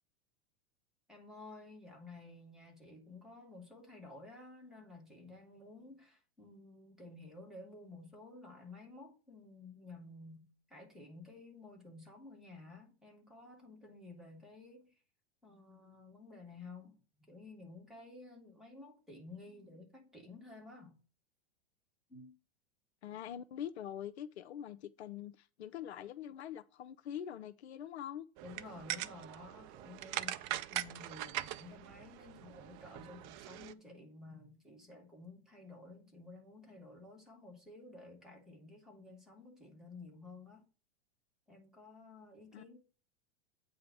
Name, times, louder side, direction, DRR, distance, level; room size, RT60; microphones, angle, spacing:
voice 1, 1.1-14.9 15.4-21.0 22.1-22.3 28.4-40.6 41.5-42.8, left 2 dB, ahead, 2.2 m, -53 dB
voice 2, 23.0-28.3 42.5-42.6, left 10 dB, 80° left, 0.5 m, -44 dB
sound 1, 28.4-33.7, right 14 dB, 40° right, 0.4 m, -42 dB
8.4 x 2.8 x 5.9 m
hypercardioid pair, 105°, 33 cm